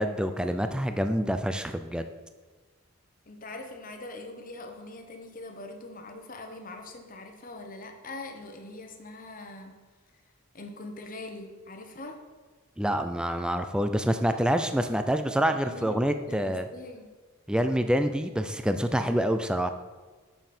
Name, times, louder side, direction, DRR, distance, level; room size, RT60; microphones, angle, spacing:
voice 1, 0.0-2.1 12.8-16.7 17.5-19.7, equal, 5° right, 8 dB, 0.4 m, -27 dB
voice 2, 3.3-9.8 10.5-12.2 15.4-17.1, left 2 dB, 40° left, 4 dB, 1.0 m, -43 dB
9.2 x 7.0 x 4.4 m, 1.4 s
head